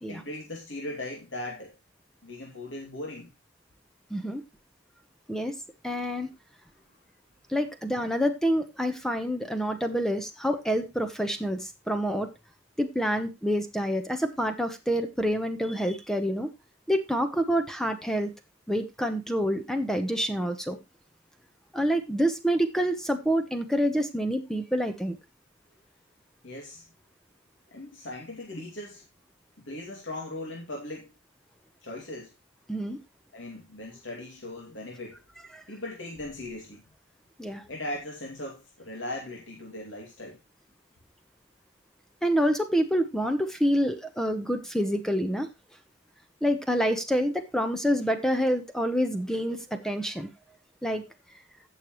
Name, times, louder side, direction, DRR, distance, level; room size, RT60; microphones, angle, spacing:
voice 1, 0.1-1.8 2.2-3.3 26.4-26.9 27.7-29.1 29.6-31.1 31.8-32.3 33.3-35.2 35.7-36.8 37.7-40.4, left 1 dB, 80° left, 2.5 m, -38 dB
voice 2, 4.1-4.4 5.3-5.5 5.8-6.3 7.5-12.3 12.8-16.5 16.9-18.3 18.7-20.8 21.7-25.2 32.7-33.0 35.5-35.6 37.4-37.6 42.2-45.5 46.4-50.3 50.8-51.0, equal, 5° left, 1.0 m, -27 dB
16.0 x 6.6 x 3.1 m
head